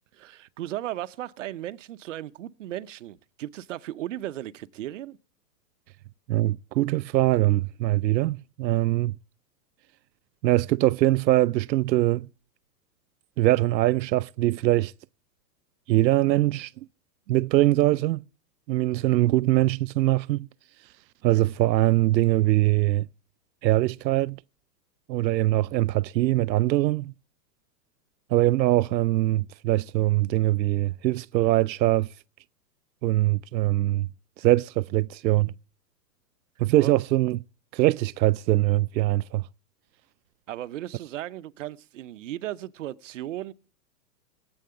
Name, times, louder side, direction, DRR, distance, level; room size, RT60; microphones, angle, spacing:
voice 1, 0.1-5.2 36.8-36.9 40.5-43.5, right 13 dB, 50° right, 0.8 m, -36 dB
voice 2, 6.3-9.2 10.4-12.3 13.4-14.9 15.9-16.7 17.3-18.2 18.7-20.5 21.2-23.1 23.6-24.4 25.1-27.1 28.3-32.1 33.0-34.1 34.4-35.5 36.6-37.4 37.7-39.4, right 16 dB, 90° right, 0.6 m, -22 dB
17.0 x 8.8 x 6.8 m
hypercardioid pair, 170°, 50 cm